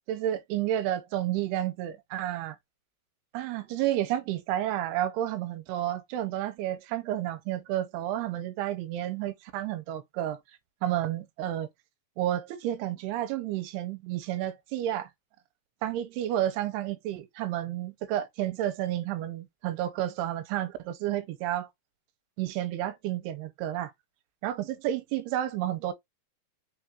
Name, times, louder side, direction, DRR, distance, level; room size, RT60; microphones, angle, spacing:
voice 1, 0.1-2.6 3.3-10.4 10.8-11.7 12.2-15.1 15.8-21.7 22.4-23.9 24.4-25.9, right 12 dB, 85° right, 2.6 m, -31 dB
6.0 x 2.3 x 2.9 m
omnidirectional pair, 4.6 m